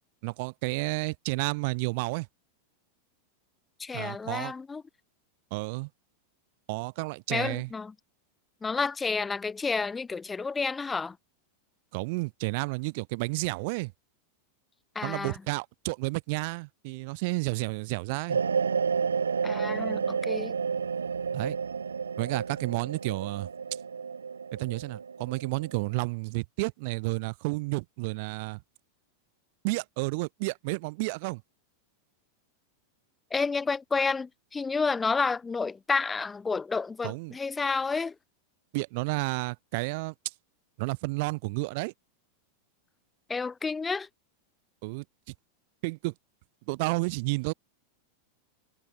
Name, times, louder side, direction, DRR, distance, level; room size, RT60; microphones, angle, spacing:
voice 1, 0.2-2.3 3.9-4.5 5.5-5.9 6.7-7.7 11.9-13.9 15.0-18.4 21.3-21.6 22.2-23.5 24.5-28.6 29.6-31.4 37.0-37.4 38.7-40.1 40.8-41.9 44.8-45.3 45.8-46.1 46.7-47.5, right 27 dB, 50° right, 4.3 m, -31 dB
voice 2, 3.8-4.8 7.3-7.9 8.6-11.2 14.9-15.3 19.4-20.5 33.3-38.1 43.3-44.1, left 4 dB, 15° left, 3.1 m, -30 dB
sound 1, 18.3-25.9, right 6 dB, 70° right, 1.0 m, -31 dB
figure-of-eight pair, 90°, 0 cm